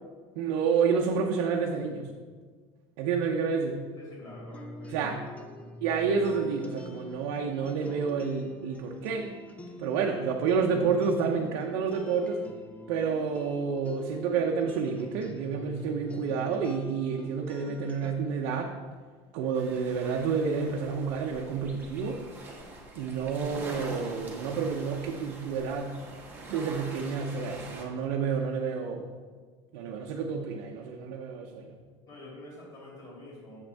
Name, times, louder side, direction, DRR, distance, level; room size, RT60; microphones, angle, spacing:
voice 1, 0.4-2.1 3.0-3.8 4.9-5.2 5.8-9.3 9.8-12.4 12.9-18.7 19.3-22.2 23.0-25.9 26.5-29.1 29.7-31.7, right 5 dB, 85° right, 1 dB, 0.7 m, -29 dB
voice 2, 4.0-5.2 5.6-5.7 32.1-33.6, left 1 dB, 35° left, -5 dB, 2.5 m, -47 dB
sound 1, 4.3-18.1, left 1 dB, 10° left, 0.4 m, -45 dB
sound 2, 19.5-27.8, right 2 dB, 15° right, 1.3 m, -44 dB
7.7 x 7.1 x 3.5 m, 1.5 s
cardioid pair, 170°, 13 cm